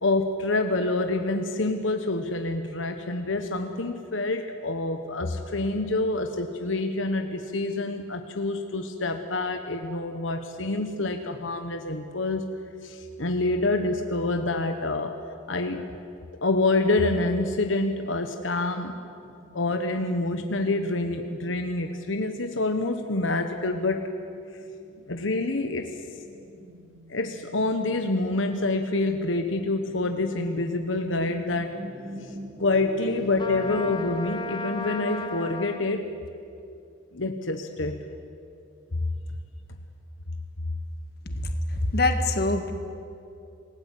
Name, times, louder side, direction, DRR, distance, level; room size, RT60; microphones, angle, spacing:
voice 1, 0.0-12.5 12.8-15.2 15.5-15.9 16.4-18.9 19.5-24.1 25.1-25.9 27.1-31.8 32.2-32.3 32.6-36.1 37.1-38.0, left 2 dB, 80° left, 6 dB, 1.3 m, -27 dB
sound 1, 19.2-33.9, right 1 dB, 35° right, 3.7 m, -45 dB
Trumpet, 33.4-35.9, left 3 dB, 25° left, 0.9 m, -35 dB
voice 2, 41.3-42.7, left 2 dB, 55° left, 6 dB, 1.9 m, -25 dB
28.0 x 18.0 x 8.4 m, 2.6 s
head